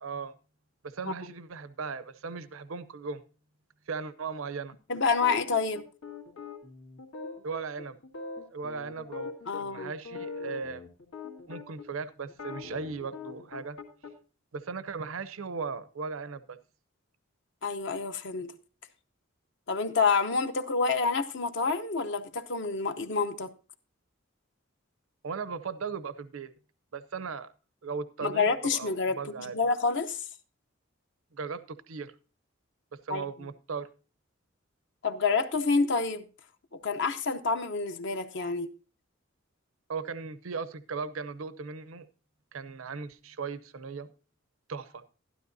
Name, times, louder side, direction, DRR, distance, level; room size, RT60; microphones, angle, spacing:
voice 1, 0.0-0.3 0.8-3.2 3.9-4.8 7.4-8.0 8.5-9.3 9.6-10.8 11.5-13.8 14.5-16.6 25.2-26.5 26.9-27.5 27.8-29.6 31.3-32.1 33.0-33.9 39.9-42.1 42.5-44.1 44.7-45.0, right 5 dB, 85° right, 0.6 m, -37 dB
voice 2, 4.9-5.9 9.5-9.9 17.6-18.5 19.7-23.5 28.2-30.2 33.1-33.3 35.0-36.3 36.7-38.7, left 4 dB, 60° left, 0.7 m, -28 dB
sound 1, 5.2-11.9 12.3-14.1, left 4 dB, 90° left, 1.9 m, -42 dB
12.0 x 12.0 x 2.7 m
head